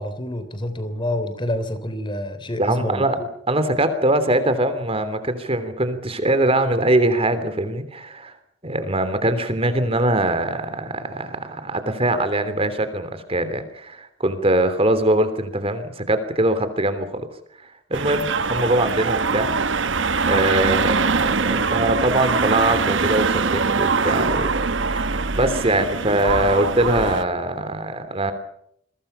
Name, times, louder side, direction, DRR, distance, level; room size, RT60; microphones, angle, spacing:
voice 1, 0.0-3.3, left 1 dB, 25° left, 11 dB, 3.2 m, -28 dB
voice 2, 2.6-3.2 3.5-8.3 8.6-17.3 17.6-19.5 20.1-24.5 24.9-28.3, right 1 dB, 30° right, 11 dB, 3.2 m, -22 dB
sound 1, 17.9-27.2, right 4 dB, 70° right, 1.2 m, -22 dB
28.5 x 23.0 x 5.7 m, 0.71 s
head